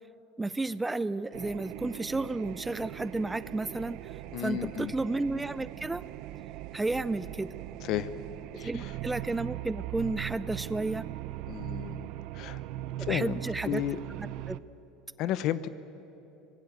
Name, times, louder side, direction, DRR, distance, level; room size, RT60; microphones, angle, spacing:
voice 1, 0.4-4.2 4.4-6.0 6.7-7.5 8.5-11.0 13.0-13.8 14.2-14.6, right 2 dB, 10° right, 16 dB, 0.5 m, -32 dB
sound 1, 1.3-14.6, right 14 dB, 60° right, 0.6 m, -40 dB
voice 2, 4.3-4.9 7.8-8.1 8.5-8.9 11.5-12.1 12.3-12.6 13.0-14.0 15.2-15.7, left 12 dB, 55° left, 14 dB, 0.9 m, -33 dB
25.0 x 20.0 x 8.0 m, 2.9 s
supercardioid pair, 125°, 0 cm